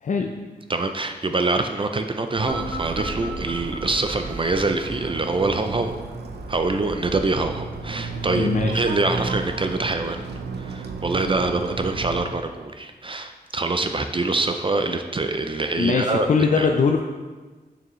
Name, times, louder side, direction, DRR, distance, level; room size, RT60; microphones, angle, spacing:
voice 1, 0.0-0.3 8.3-8.8 15.8-17.0, left 5 dB, 50° left, 3 dB, 0.4 m, -21 dB
voice 2, 0.7-6.0 6.5-10.3 10.6-16.3 16.6-16.7, right 3 dB, 30° right, 7 dB, 0.4 m, -25 dB
sound 1, 2.4-12.3, right 3 dB, 80° right, 0.6 m, -33 dB
sound 2, 2.5-5.5, right 1 dB, 10° left, 2.0 m, -35 dB
6.8 x 6.2 x 3.1 m, 1.3 s
wide cardioid pair, 110°, 17 cm